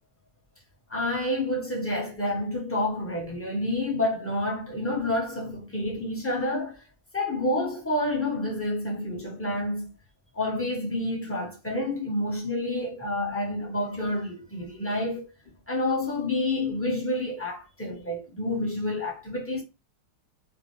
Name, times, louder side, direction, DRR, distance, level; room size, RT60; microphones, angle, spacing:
voice 1, 0.9-6.8 7.1-9.9 10.3-15.3 15.7-19.6, left 1 dB, 15° left, 0.4 m, -29 dB
4.8 x 2.2 x 3.2 m
omnidirectional pair, 2.3 m